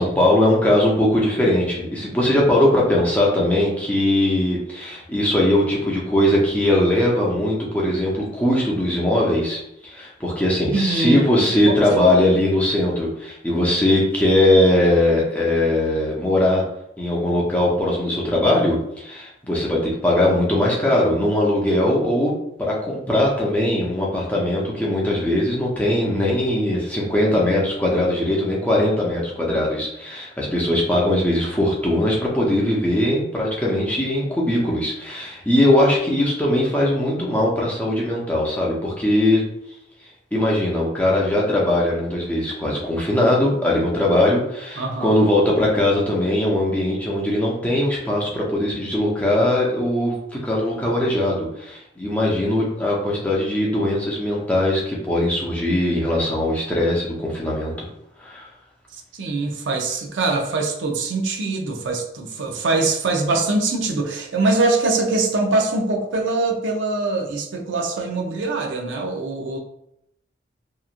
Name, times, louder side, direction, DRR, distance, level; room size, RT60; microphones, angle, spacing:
voice 1, 0.0-16.6 17.0-22.3 22.6-39.5 40.3-50.2 50.4-57.7 58.2-58.5, left 1 dB, 10° left, -4 dB, 0.6 m, -20 dB
voice 2, 10.7-11.5 11.9-12.2 44.8-45.2 58.9-69.6, right 3 dB, 80° right, 1 dB, 0.5 m, -23 dB
2.9 x 2.4 x 2.4 m, 0.79 s
head